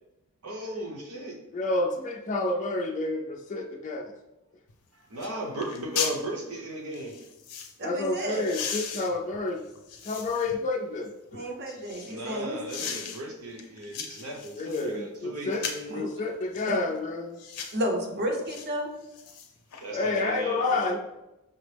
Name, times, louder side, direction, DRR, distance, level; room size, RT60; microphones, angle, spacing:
voice 1, 0.4-1.4 4.9-7.2 12.0-16.1 19.8-21.0, equal, 75° right, 1 dB, 0.8 m, -36 dB
voice 2, 1.5-4.1 7.8-9.6 10.0-11.4 14.6-15.7 15.9-17.4 19.9-21.0, left 2 dB, 35° left, -1 dB, 0.3 m, -29 dB
sound 1, 4.7-4.8 5.2-5.3 5.6-6.2 6.9-7.7 8.3-10.6 11.1-12.2 12.7-13.2 13.6-14.9 15.5-15.9 16.5-16.8 17.4-17.8 18.5-18.7 19.0-19.8 20.2-20.3, left 6 dB, 90° left, 0.6 m, -37 dB
voice 3, 7.8-8.4 11.3-12.9 15.5-15.6 15.9-16.1 16.7-16.8 17.7-19.0, equal, 45° right, 2 dB, 0.7 m, -32 dB
5.6 x 2.0 x 3.3 m, 0.95 s
head